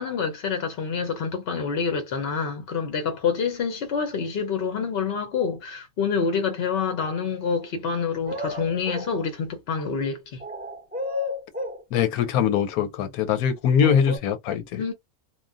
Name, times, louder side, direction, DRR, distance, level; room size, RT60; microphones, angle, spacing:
voice 1, 0.0-10.4 14.8-14.9, left 5 dB, 60° left, 0.7 m, -27 dB
sound 1, 8.3-9.1 10.4-11.8 13.8-14.2, left 2 dB, 15° right, 0.3 m, -31 dB
voice 2, 11.9-14.8, left 8 dB, 85° left, 1.1 m, -22 dB
3.0 x 2.3 x 2.4 m
omnidirectional pair, 1.5 m